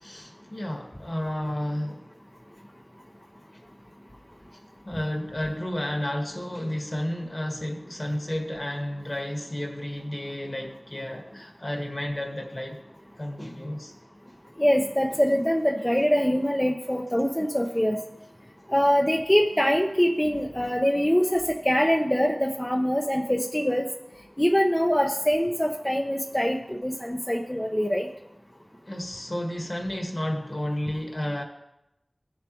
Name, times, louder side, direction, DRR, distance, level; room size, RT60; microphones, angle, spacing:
voice 1, 0.0-2.1 4.8-12.8 13.2-13.9 28.8-31.4, left 1 dB, 45° left, 1.8 m, -32 dB
voice 2, 14.6-18.0 18.7-23.9 24.4-28.1, equal, 15° left, 0.9 m, -23 dB
16.0 x 7.1 x 3.0 m
wide cardioid pair, 45°, 0 cm